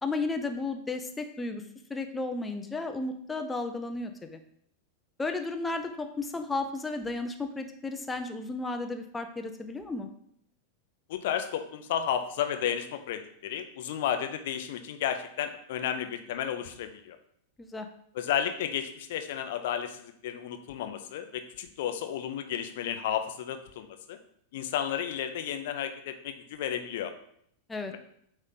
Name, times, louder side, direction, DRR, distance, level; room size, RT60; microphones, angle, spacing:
voice 1, 0.0-1.6 1.9-4.4 5.2-10.1 17.6-17.9 27.7-27.9, left 3 dB, 10° left, 6 dB, 0.6 m, -33 dB
voice 2, 11.1-17.2 18.1-24.2 24.5-27.1 27.9-28.0, left 9 dB, 55° left, 7 dB, 0.6 m, -32 dB
8.5 x 3.2 x 3.8 m, 0.69 s
figure-of-eight pair, 90°, 0 cm